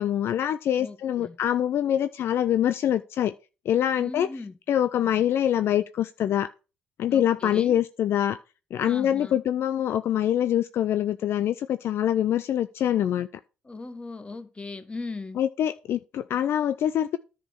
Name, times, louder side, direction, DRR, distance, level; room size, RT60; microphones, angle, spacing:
voice 1, 0.0-3.3 3.7-4.3 4.7-6.5 7.0-8.4 8.7-13.3 15.4-17.2, left 10 dB, 60° left, 0.4 m, -24 dB
voice 2, 0.8-1.4 4.0-4.6 7.1-7.8 8.8-9.4 13.6-15.4, left 3 dB, 25° left, 1.4 m, -38 dB
10.0 x 4.9 x 5.9 m
hypercardioid pair, 55°, 5 cm